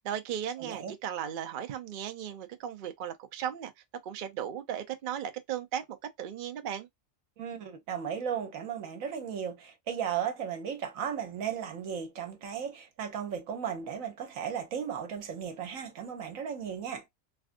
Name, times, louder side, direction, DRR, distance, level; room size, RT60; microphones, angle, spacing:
voice 1, 0.0-3.7 4.0-6.9, right 9 dB, 60° right, 0.5 m, -36 dB
voice 2, 0.6-0.9 7.4-17.0, right 8 dB, 80° right, 1.2 m, -35 dB
3.3 x 2.4 x 2.5 m
omnidirectional pair, 1.4 m